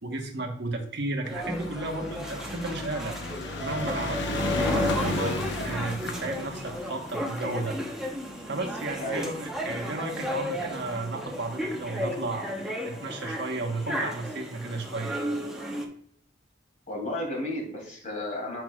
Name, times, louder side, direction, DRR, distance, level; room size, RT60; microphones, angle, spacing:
voice 1, 0.0-3.1 3.6-8.1 8.5-12.5 12.8-15.2, right 2 dB, 60° right, 2 dB, 1.3 m, -33 dB
sound 1, 1.2-15.9, equal, 5° right, 1.0 m, -34 dB
sound 2, 1.3-9.8 10.6-10.7 10.9-11.0 11.3-11.4, left 2 dB, 65° left, 0.9 m, -34 dB
voice 2, 16.9-18.6, left 1 dB, 40° left, -1 dB, 2.9 m, -33 dB
8.1 x 6.1 x 2.4 m, 0.63 s
head